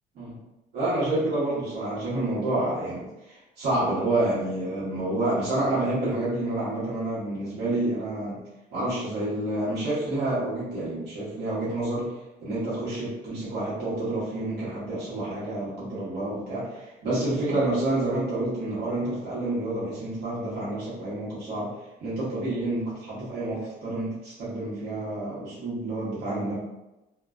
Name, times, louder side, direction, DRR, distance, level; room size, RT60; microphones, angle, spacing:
voice 1, 0.7-8.4 8.7-21.7 22.0-26.6, right 2 dB, 80° right, -9 dB, 1.1 m, -29 dB
2.4 x 2.2 x 2.3 m, 0.97 s
cardioid pair, 110°, 17 cm